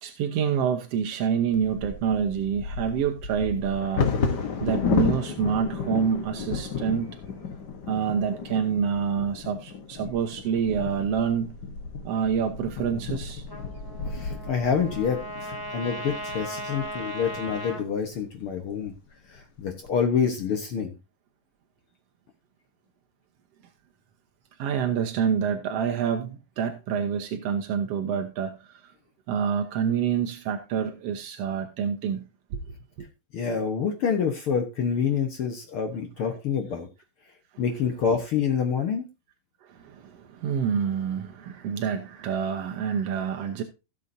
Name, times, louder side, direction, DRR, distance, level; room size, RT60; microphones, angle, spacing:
voice 1, 0.0-4.1 4.6-7.2 7.9-11.5 12.0-13.4 24.6-28.9 29.3-32.2 32.5-32.6 33.0-33.1 36.2-36.4 39.6-43.6, right 7 dB, 70° right, 1.5 m, -27 dB
Bird vocalization bird call bird song / Wind / Thunder, 1.5-17.4 18.1-18.2 18.5-18.9 19.4-19.9, left 5 dB, 85° left, 0.9 m, -33 dB
Trumpet, 13.5-17.8, equal, 15° left, 0.7 m, -37 dB
voice 2, 14.1-18.9 19.3-20.9 33.3-36.9 37.6-39.1, left 6 dB, 60° left, 1.4 m, -27 dB
16.5 x 7.0 x 2.7 m
omnidirectional pair, 4.0 m